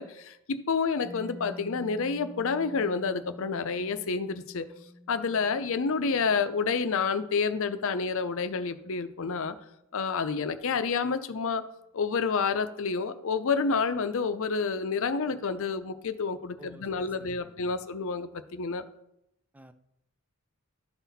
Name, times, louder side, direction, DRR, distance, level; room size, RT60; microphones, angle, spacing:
voice 1, 0.0-4.7 5.1-9.6 9.9-11.7 11.9-18.8, left 5 dB, 65° left, 11 dB, 0.6 m, -29 dB
Mallet percussion, 1.0-8.5, equal, 15° left, 1.5 m, -49 dB
voice 2, 16.6-17.7 19.5-19.7, right 1 dB, 5° right, 9 dB, 0.4 m, -52 dB
12.0 x 4.1 x 4.1 m, 0.82 s
head